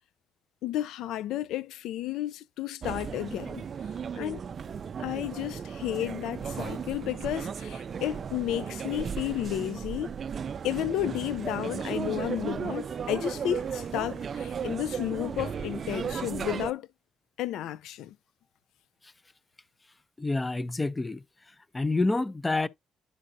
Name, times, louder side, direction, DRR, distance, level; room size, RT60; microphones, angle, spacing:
voice 1, 0.6-3.7 4.1-4.4 5.0-10.1 10.6-16.9 17.4-18.2, left 12 dB, 85° left, 0.3 m, -32 dB
sound 1, 2.8-16.7, right 7 dB, 50° right, 0.4 m, -35 dB
voice 2, 20.2-21.2 21.7-22.7, left 2 dB, 20° left, 0.5 m, -27 dB
11.0 x 3.9 x 2.6 m
cardioid pair, 90°, 0 cm